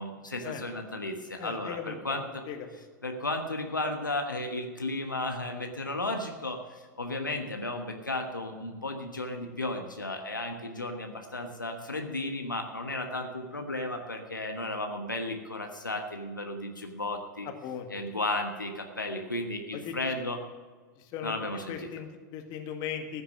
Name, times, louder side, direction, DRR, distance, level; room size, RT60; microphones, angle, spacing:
voice 1, 0.0-2.4 3.0-17.5 17.9-20.4 21.2-21.9, left 2 dB, 85° left, 4 dB, 1.2 m, -34 dB
voice 2, 1.4-2.2 2.5-2.7 17.5-17.9 19.7-19.9 21.0-21.3 21.7-23.2, left 8 dB, 40° left, 5 dB, 1.9 m, -38 dB
14.5 x 6.7 x 9.5 m, 1.4 s
figure-of-eight pair, 95°, 10 cm